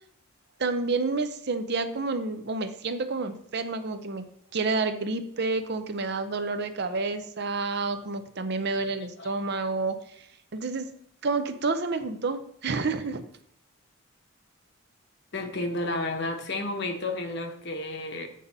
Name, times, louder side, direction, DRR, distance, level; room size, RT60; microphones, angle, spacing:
voice 1, 0.6-4.2 4.5-10.3 10.5-10.9 11.2-13.2, right 3 dB, 50° right, 9 dB, 0.6 m, -29 dB
voice 2, 15.3-18.3, left 2 dB, 55° left, 5 dB, 1.0 m, -31 dB
7.5 x 5.2 x 4.1 m, 0.67 s
head